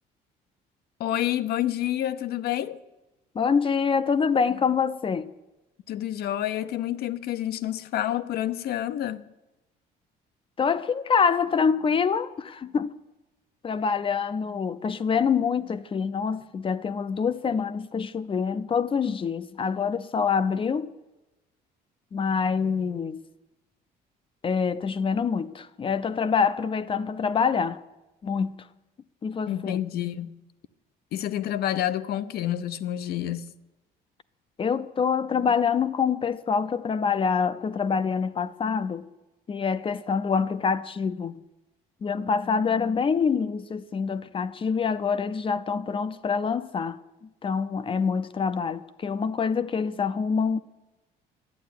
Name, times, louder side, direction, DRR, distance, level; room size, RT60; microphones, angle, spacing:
voice 1, 1.0-2.8 5.9-9.3 29.5-30.4 31.1-33.5, left 12 dB, 70° left, 0.7 m, -28 dB
voice 2, 3.3-5.3 10.6-12.9 13.6-20.9 22.1-23.2 24.4-27.8 28.2-28.7 29.2-29.8 34.6-39.1 39.5-41.4 42.0-47.0 47.4-50.6, left 6 dB, 30° left, 0.6 m, -26 dB
11.5 x 8.6 x 9.3 m
cardioid pair, 110°, 17 cm